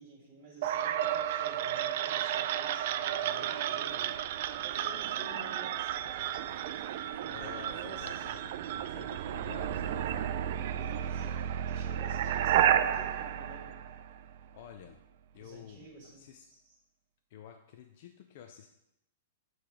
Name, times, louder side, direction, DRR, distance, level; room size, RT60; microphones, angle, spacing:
voice 1, 0.0-4.2 4.5-6.6 7.2-8.5 10.7-13.8 15.4-16.2 16.5-16.7, right 3 dB, 30° right, -4 dB, 1.8 m, -50 dB
sound 1, 0.6-14.5, right 10 dB, 55° right, 0.3 m, -32 dB
voice 2, 7.2-10.3 11.0-11.3 14.5-15.0 15.3-15.9 16.2-16.5 17.3-18.7, left 9 dB, 55° left, 5 dB, 0.5 m, -50 dB
6.9 x 3.3 x 5.8 m, 0.81 s
hypercardioid pair, 150°, 0 cm